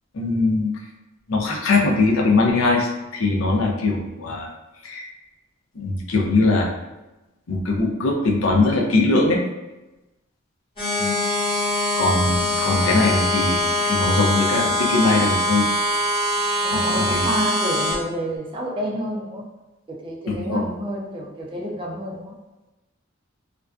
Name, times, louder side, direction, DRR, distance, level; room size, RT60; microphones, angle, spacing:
voice 1, 0.1-0.7 1.3-4.5 4.8-5.1 5.8-6.7 7.5-9.4 11.0-11.2 12.0-15.7 16.7-17.3 20.3-20.6, left 3 dB, 85° left, 0 dB, 0.5 m, -21 dB
sound 1, 10.8-17.9, left 1 dB, 25° left, 1.0 m, -23 dB
voice 2, 16.6-19.4 19.9-22.3, equal, 25° right, -2 dB, 0.4 m, -29 dB
2.4 x 2.1 x 2.3 m, 1.0 s
head